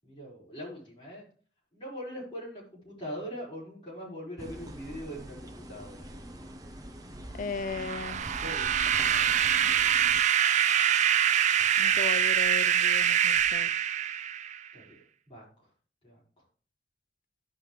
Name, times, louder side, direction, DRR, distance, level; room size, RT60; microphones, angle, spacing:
voice 1, 0.0-1.3 1.7-6.1 8.3-8.8 14.7-15.7 16.0-16.4, equal, 30° left, 5.2 m, -42 dB
sound 1, 4.4-10.2, equal, 20° right, 1.1 m, -44 dB
voice 2, 7.4-8.3 11.8-13.7, left 4 dB, 50° left, 0.5 m, -36 dB
sound 2, 7.6-14.7, right 9 dB, 45° right, 0.4 m, -25 dB
sound 3, 8.1-13.7, equal, 85° left, 2.8 m, -51 dB
14.5 x 5.5 x 3.3 m
head